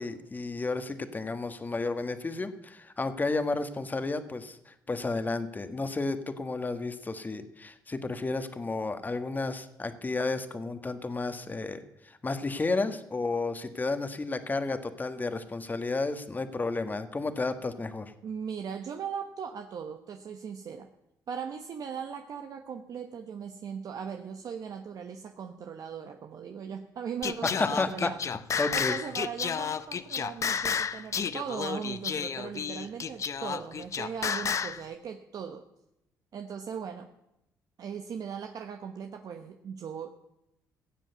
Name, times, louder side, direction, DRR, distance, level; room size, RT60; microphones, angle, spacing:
voice 1, 0.0-18.1 27.4-29.0, left 3 dB, 25° left, 9 dB, 1.5 m, -32 dB
voice 2, 18.2-20.9 21.3-28.2 28.7-35.6 36.3-37.1 37.8-40.1, right 7 dB, 60° right, 5 dB, 1.1 m, -38 dB
Singing, 27.2-34.8, left 7 dB, 45° left, 0.7 m, -31 dB
16.0 x 7.5 x 8.1 m, 0.86 s
cardioid pair, 75°, 7 cm